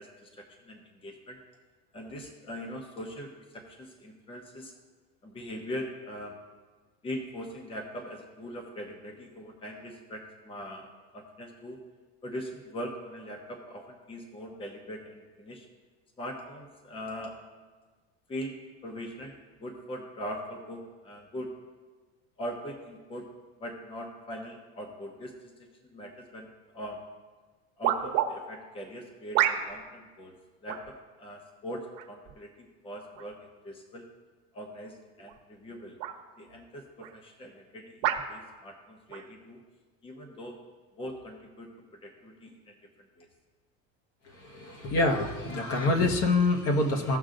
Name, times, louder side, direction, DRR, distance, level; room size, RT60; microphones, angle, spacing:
voice 1, 0.0-1.4 1.9-4.7 5.2-6.4 7.0-10.9 11.1-11.8 12.2-15.7 16.2-17.4 18.3-18.6 18.8-21.5 22.4-27.0 27.8-30.3 30.6-34.1 34.5-36.0 36.4-39.6 40.0-40.6 41.0-41.7 42.0-43.3, equal, 15° left, 2 dB, 1.0 m, -41 dB
sound 1, 26.9-27.0 27.8-28.3 29.3-29.9 30.7-30.9 31.9-32.3 33.1-33.3 35.2-35.4 36.0-36.2 37.0-37.1 38.0-38.3 39.1-39.3, right 11 dB, 55° right, 1.1 m, -28 dB
voice 2, 44.2-47.2, left 2 dB, 45° left, 2 dB, 1.2 m, -26 dB
16.5 x 6.3 x 2.6 m, 1.4 s
cardioid pair, 145°, 32 cm